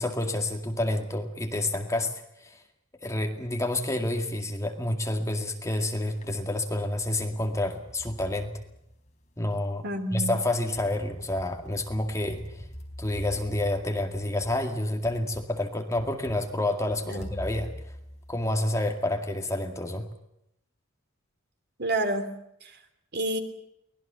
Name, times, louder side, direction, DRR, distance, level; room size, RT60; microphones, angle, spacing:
voice 1, 0.0-2.1 2.4-2.6 3.0-8.5 9.4-9.8 10.1-12.4 13.0-17.7 18.3-20.1, left 1 dB, 15° left, 4 dB, 2.1 m, -29 dB
sound 1, 5.5-6.4 6.9-9.3 10.5-14.9 15.7-15.8 17.2-19.1, equal, 35° left, 4.0 m, -45 dB
voice 2, 9.8-10.4 17.1-17.3 21.8-22.3 22.6-22.8 23.1-23.4, right 2 dB, 50° right, 7 dB, 3.0 m, -29 dB
sound 2, 10.7-10.8 11.3-11.8 12.3-12.7 13.2-13.6 14.1-14.5 15.0-15.4 15.9-16.4 16.9-17.3, equal, 10° right, 5.6 m, -45 dB
24.0 x 19.5 x 7.0 m, 0.79 s
head